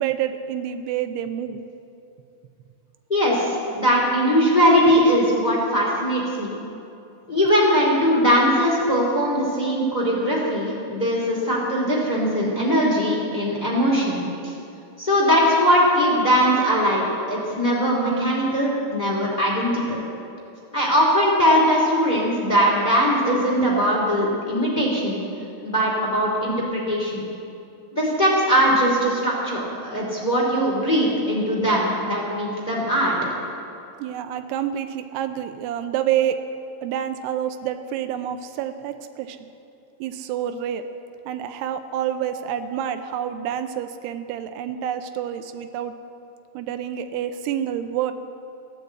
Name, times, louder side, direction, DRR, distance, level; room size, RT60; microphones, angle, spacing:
voice 1, 0.0-1.6 34.0-36.4 36.8-39.5 40.0-40.9 41.3-45.9 46.5-48.1, right 10 dB, 85° right, 9 dB, 2.3 m, -28 dB
voice 2, 3.1-6.5 7.3-14.5 15.0-20.0 20.7-25.2 25.6-27.2 27.9-33.1, equal, 15° left, -3 dB, 1.5 m, -20 dB
15.5 x 9.6 x 8.0 m, 2.7 s
omnidirectional pair, 5.4 m